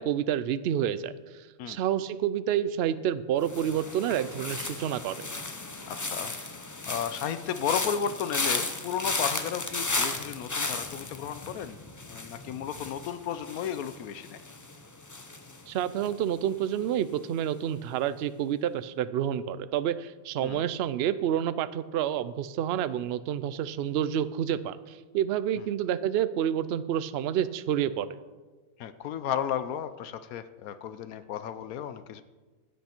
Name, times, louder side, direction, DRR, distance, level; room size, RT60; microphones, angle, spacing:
voice 1, 0.0-5.3 15.7-28.1, right 10 dB, 65° right, 14 dB, 0.6 m, -29 dB
sound 1, 3.4-16.5 16.7-17.2, left 3 dB, 30° left, 0.3 m, -35 dB
voice 2, 5.9-6.3 6.9-11.8 12.0-14.4 20.4-20.7 28.8-32.2, left 8 dB, 80° left, 12 dB, 1.1 m, -33 dB
15.5 x 8.5 x 4.4 m, 1.3 s
omnidirectional pair, 1.5 m